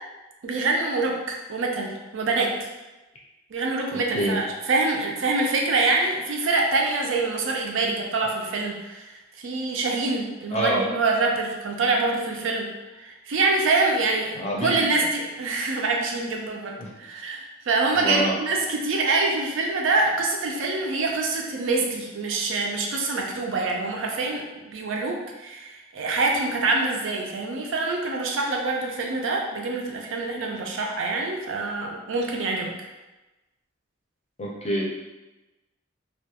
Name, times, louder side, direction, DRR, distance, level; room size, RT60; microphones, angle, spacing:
voice 1, 0.4-2.5 3.5-9.0 9.4-12.7 13.0-32.7, right 3 dB, 75° right, 0 dB, 0.4 m, -25 dB
voice 2, 10.5-10.8 14.3-15.1 16.8-16.9 17.9-18.3 34.4-34.9, right 1 dB, 30° left, -3 dB, 0.5 m, -26 dB
2.3 x 2.2 x 2.7 m, 1.1 s
head